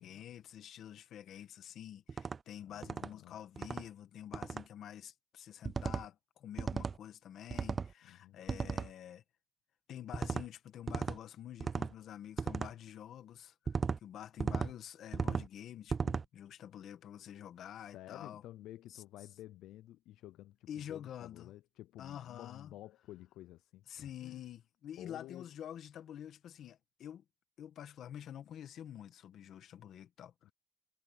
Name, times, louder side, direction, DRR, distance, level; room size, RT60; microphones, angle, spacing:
voice 1, 0.0-9.2 9.9-18.4 18.9-19.0 20.7-21.5 22.0-22.7 23.9-27.2 27.6-30.5, left 10 dB, 70° left, 1.6 m, -48 dB
sound 1, 2.1-2.4 2.8-3.1 3.6-3.8 4.3-4.6 5.6-6.0 6.6-7.0 7.5-7.9 8.5-8.9 10.1-10.4 10.9-11.2 11.6-11.9 12.4-12.7 13.7-14.0 14.4-14.7 15.1-15.5 15.9-16.2, right 5 dB, 40° right, 0.3 m, -35 dB
voice 2, 2.6-3.4 8.0-8.4 17.8-24.4 25.0-25.5 30.4-30.5, left 14 dB, 90° left, 0.4 m, -52 dB
cardioid pair, 90°, 0 cm